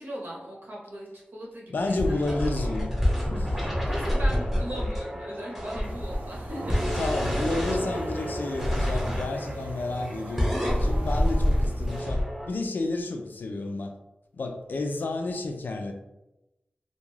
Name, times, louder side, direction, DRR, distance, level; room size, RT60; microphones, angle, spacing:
voice 1, 0.0-2.4 3.9-7.0 9.3-9.7, equal, 80° right, -4 dB, 0.8 m, -39 dB
voice 2, 1.7-2.9 3.3-3.6 7.0-13.9 14.3-15.9, left 2 dB, 75° left, 4 dB, 0.4 m, -31 dB
sound 1, 1.8-12.5, equal, 5° right, 0.8 m, -28 dB
sound 2, 5.8-12.0, right 1 dB, 60° right, 0.4 m, -39 dB
2.4 x 2.2 x 3.1 m, 0.95 s
wide cardioid pair, 110°, 3 cm